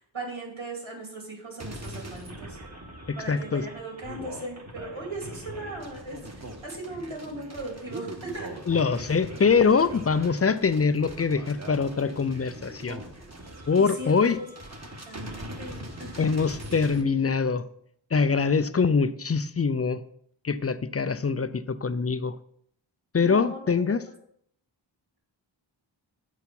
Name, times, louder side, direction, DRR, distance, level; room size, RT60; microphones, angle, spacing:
voice 1, 0.0-2.6 3.2-8.5 13.1-13.2 13.8-14.5 15.1-16.3 23.2-24.0, right 2 dB, 90° right, -2 dB, 2.7 m, -38 dB
sound 1, 1.6-17.0, right 1 dB, 35° right, 1.3 m, -41 dB
voice 2, 3.1-3.6 8.7-13.0 13.7-14.4 16.2-17.6 18.1-20.0 20.4-22.3 23.1-24.0, left 5 dB, 35° left, 14 dB, 0.4 m, -24 dB
8.0 x 4.7 x 5.3 m, 0.68 s
wide cardioid pair, 70°, 45 cm